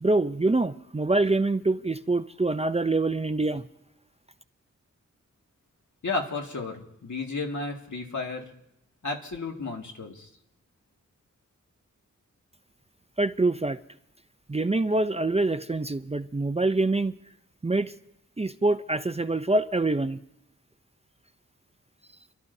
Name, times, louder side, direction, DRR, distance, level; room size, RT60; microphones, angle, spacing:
voice 1, 0.0-3.7 13.2-13.8 14.5-17.2 17.6-17.9 18.4-20.2, right 2 dB, 20° right, 0.5 m, -25 dB
voice 2, 6.0-8.5 9.0-10.3, left 3 dB, 75° left, 2.1 m, -33 dB
29.5 x 12.5 x 2.7 m
wide cardioid pair, 70°, 30 cm